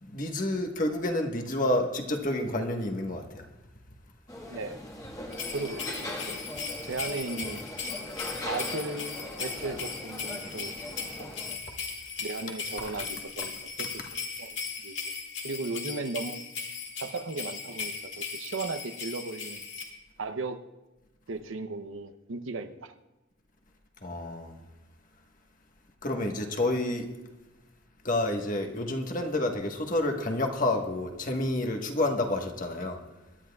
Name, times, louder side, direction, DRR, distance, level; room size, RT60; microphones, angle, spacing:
voice 1, 0.0-3.4 12.8-13.0 24.0-24.6 26.0-27.0 28.0-33.0, left 1 dB, 40° left, 3 dB, 1.4 m, -29 dB
sound 1, 4.3-11.6, left 1 dB, 20° left, 1.5 m, -40 dB
sound 2, 5.3-19.8, left 5 dB, 65° left, 2.2 m, -38 dB
voice 2, 5.5-6.4 6.8-7.9 8.4-11.3 12.2-13.5 13.8-14.9 15.4-16.4 17.0-19.6 20.2-20.6 21.3-22.9, right 3 dB, 90° right, 10 dB, 0.8 m, -36 dB
22.0 x 12.0 x 2.4 m, 1.1 s
head